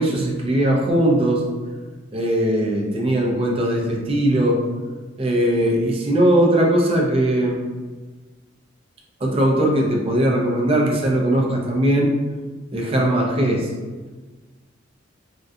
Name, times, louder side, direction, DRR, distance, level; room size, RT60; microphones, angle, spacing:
voice 1, 0.0-1.4 2.1-4.6 5.2-7.6 9.2-12.1 12.7-13.7, right 1 dB, 30° right, -1 dB, 0.5 m, -19 dB
3.5 x 2.2 x 2.6 m, 1.3 s
head